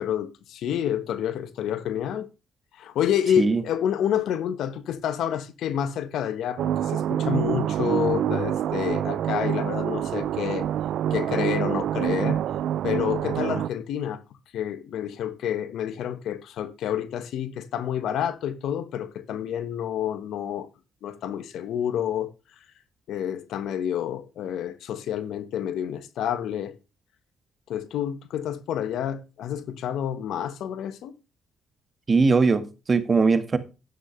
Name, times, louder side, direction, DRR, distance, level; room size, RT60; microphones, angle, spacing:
voice 1, 0.0-2.3 2.8-10.7 11.1-12.4 12.8-14.2 14.5-20.7 21.0-22.3 23.1-26.7 27.7-31.1, left 9 dB, 80° left, 1.4 m, -29 dB
sound 1, 6.6-13.7, right 10 dB, 75° right, 0.5 m, -26 dB
voice 2, 32.1-33.6, right 4 dB, 35° right, 1.7 m, -20 dB
11.5 x 9.5 x 3.3 m
cardioid pair, 90°, 0 cm